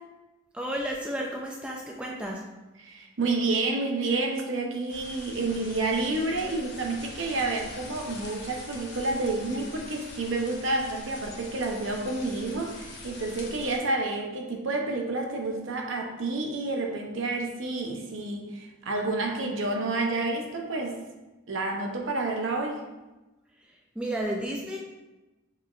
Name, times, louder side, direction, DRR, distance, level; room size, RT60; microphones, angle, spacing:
voice 1, 0.5-2.4 24.0-24.8, right 1 dB, 5° right, -1 dB, 0.3 m, -32 dB
voice 2, 2.8-21.0 21.5-22.8, right 2 dB, 65° right, 1 dB, 0.7 m, -29 dB
sound 1, 4.9-13.8, left 2 dB, 55° left, 0.8 m, -44 dB
6.6 x 3.0 x 2.4 m, 1.1 s
head